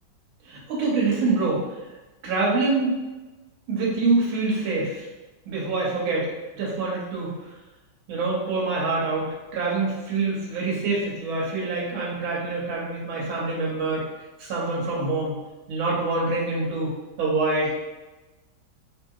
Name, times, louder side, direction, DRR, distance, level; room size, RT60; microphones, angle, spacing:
voice 1, 0.5-1.6 2.2-2.9 3.7-5.0 5.5-6.3 6.5-7.3 8.1-14.1 14.4-15.4 15.7-17.8, right 3 dB, 80° right, -5 dB, 1.6 m, -25 dB
3.2 x 2.7 x 2.3 m, 1.1 s
omnidirectional pair, 2.2 m